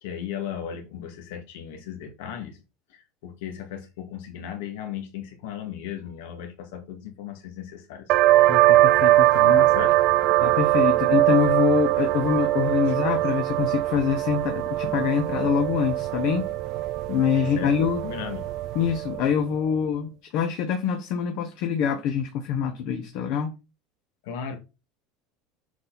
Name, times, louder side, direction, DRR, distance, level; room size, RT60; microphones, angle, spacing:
voice 1, 0.0-2.6 2.9-8.1 9.6-10.0 17.4-18.5 24.2-24.6, left 8 dB, 75° left, 1.9 m, -36 dB
sound 1, 8.1-19.4, right 16 dB, 40° right, 0.3 m, -22 dB
voice 2, 8.5-9.7 10.4-16.5 17.1-18.0 18.7-23.5, left 7 dB, 45° left, 1.0 m, -25 dB
7.5 x 4.1 x 4.0 m
cardioid pair, 175°, 0 cm